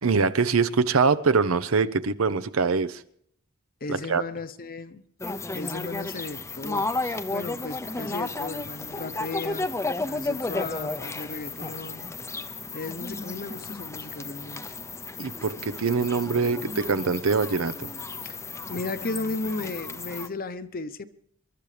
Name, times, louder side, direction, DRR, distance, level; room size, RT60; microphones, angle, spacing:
voice 1, 0.0-3.0 3.9-4.2 15.2-17.9, right 4 dB, 75° right, 0.8 m, -24 dB
voice 2, 3.8-5.0 5.5-6.9 7.3-9.7 10.1-12.5 12.7-14.6 18.2-18.4 18.7-21.1, left 3 dB, 45° left, 0.9 m, -35 dB
sound 1, 5.2-20.3, left 3 dB, 15° left, 0.6 m, -33 dB
27.5 x 12.0 x 3.3 m
head